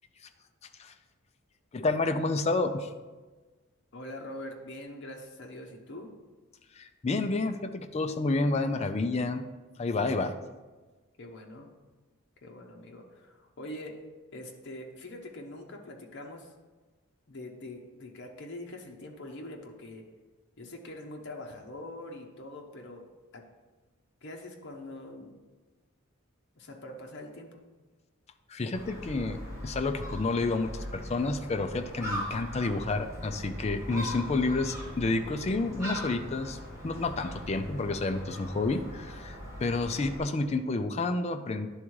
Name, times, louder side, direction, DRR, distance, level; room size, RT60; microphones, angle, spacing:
voice 1, 1.7-2.9 6.8-9.4 9.8-10.3 28.5-36.6 36.8-41.7, left 3 dB, 30° left, 7 dB, 0.4 m, -30 dB
voice 2, 3.9-6.1 11.2-11.7 12.4-14.0 14.3-16.5 17.3-20.0 20.6-23.0 23.3-23.4 24.2-25.4 26.6-27.6, left 1 dB, 55° left, 1 dB, 0.9 m, -43 dB
Gull seagull, 28.7-40.2, equal, 15° right, 1.5 m, -40 dB
10.5 x 3.6 x 4.6 m, 1.3 s
head